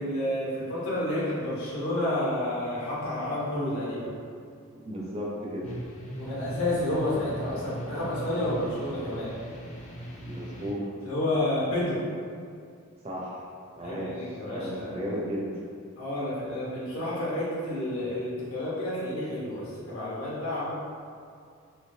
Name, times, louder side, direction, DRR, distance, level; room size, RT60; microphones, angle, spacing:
voice 1, 0.0-4.1 6.1-9.3 11.0-12.0 13.8-15.0 16.0-20.7, left 1 dB, 75° left, -8 dB, 1.1 m, -30 dB
voice 2, 4.7-5.8 10.2-10.9 13.0-13.4 13.8-14.1 14.5-15.5, equal, 25° right, -4 dB, 0.5 m, -34 dB
sound 1, 5.6-10.7, right 1 dB, 30° left, 0.5 m, -39 dB
3.2 x 3.1 x 2.7 m, 2.3 s
head